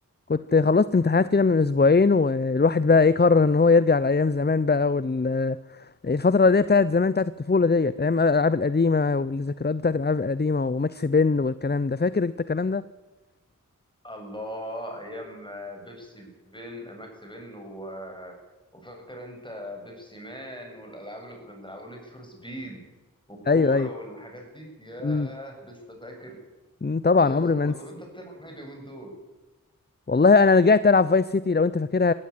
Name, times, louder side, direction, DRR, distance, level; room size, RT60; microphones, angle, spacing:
voice 1, 0.3-5.6 6.0-12.8 23.5-23.9 25.0-25.3 26.8-27.7 30.1-32.1, left 4 dB, 30° left, 16 dB, 0.6 m, -21 dB
voice 2, 14.0-18.3 18.7-22.8 23.3-26.4 27.2-29.1, equal, 15° left, 2 dB, 7.6 m, -40 dB
17.0 x 16.0 x 9.7 m, 1.2 s
wide cardioid pair, 45°, 33 cm